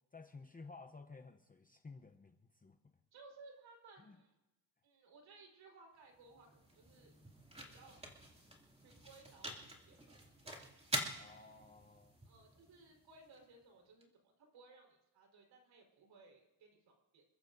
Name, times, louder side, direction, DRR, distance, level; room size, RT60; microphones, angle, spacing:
voice 1, 0.1-2.8 4.0-4.2 11.1-12.1, left 4 dB, 20° left, 6 dB, 0.7 m, -55 dB
voice 2, 3.1-4.4 4.8-7.1 7.7-8.0 8.8-10.7 12.2-14.1 14.4-17.2, right 3 dB, 85° right, 1 dB, 4.5 m, -61 dB
sound 1, 5.9-14.0, right 1 dB, 15° right, 2.6 m, -47 dB
28.0 x 14.0 x 2.7 m, 1.0 s
cardioid pair, 130°, 43 cm